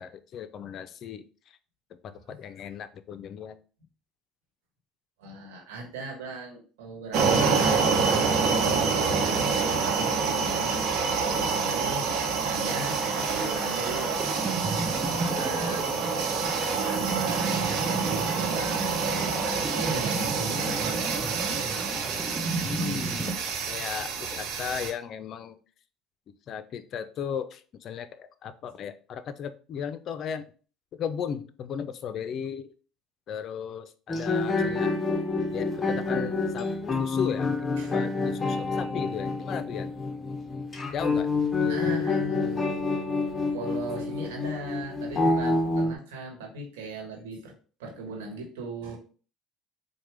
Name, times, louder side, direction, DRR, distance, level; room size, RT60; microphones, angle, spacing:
voice 1, 0.0-1.6 2.4-3.6 22.6-25.6 26.5-30.5 30.9-32.7 33.3-34.9 35.5-36.7 36.9-39.9 40.9-41.3 41.6-42.0, left 7 dB, 55° left, 11 dB, 0.4 m, -36 dB
voice 2, 5.2-11.0 11.2-15.9 16.6-21.7 37.8-38.0 41.7-42.7 43.5-47.5 47.8-49.0, right 2 dB, 90° right, 1 dB, 1.2 m, -38 dB
sound 1, 7.1-24.9, right 5 dB, 65° right, 0.8 m, -27 dB
sound 2, 12.7-23.4, right 3 dB, 15° right, 0.6 m, -34 dB
sound 3, 34.1-45.9, left 3 dB, 25° left, 0.7 m, -28 dB
4.8 x 2.1 x 3.3 m, 0.39 s
supercardioid pair, 80°, 0 cm